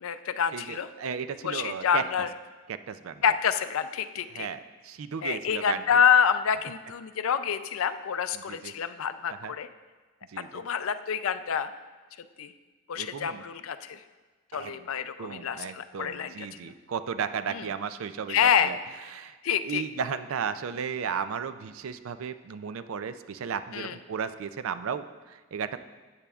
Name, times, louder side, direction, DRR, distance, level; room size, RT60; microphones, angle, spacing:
voice 1, 0.0-0.9 1.4-2.3 3.2-4.5 5.2-9.7 10.5-11.7 12.4-12.5 12.9-14.0 14.5-16.5 17.5-17.7 18.3-18.8 19.4-19.8 23.7-24.0, left 7 dB, 80° left, 11 dB, 0.4 m, -27 dB
voice 2, 0.5-2.0 2.7-3.2 4.3-6.0 8.3-8.7 9.4-9.5 10.3-10.6 12.9-13.4 14.5-14.7 15.2-18.8 19.1-19.4 19.6-25.8, right 6 dB, 80° right, 11 dB, 0.4 m, -35 dB
13.5 x 8.9 x 2.4 m, 1.3 s
head